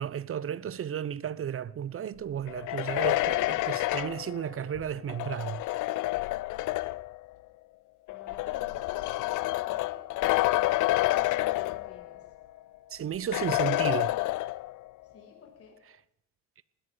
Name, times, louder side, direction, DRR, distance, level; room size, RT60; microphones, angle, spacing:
voice 1, 0.0-5.6 12.9-14.2, right 9 dB, 45° right, 0.7 m, -33 dB
sound 1, 2.5-7.2 8.1-12.3 12.6-12.7 13.3-14.9, left 18 dB, 80° left, 0.5 m, -29 dB
voice 2, 8.1-12.2 15.0-15.8, left 4 dB, 50° left, 6.6 m, -52 dB
20.5 x 17.0 x 3.9 m
cardioid pair, 90°, 30 cm